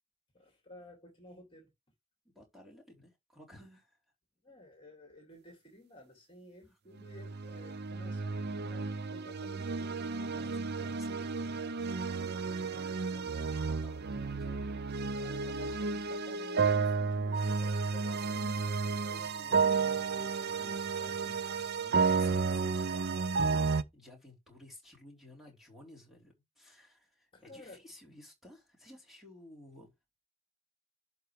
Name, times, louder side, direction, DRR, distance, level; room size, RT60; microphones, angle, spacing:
voice 1, 0.3-1.7 4.4-10.3 15.2-18.8 19.1-22.1 27.3-27.8, left 1 dB, 25° left, 2.5 m, -54 dB
voice 2, 2.3-4.0 6.7-6.8 10.1-11.7 12.1-14.5 21.9-23.1 23.5-29.9, left 1 dB, ahead, 3.8 m, -55 dB
sound 1, 7.0-23.8, right 4 dB, 55° right, 0.6 m, -32 dB
11.5 x 4.6 x 3.3 m
head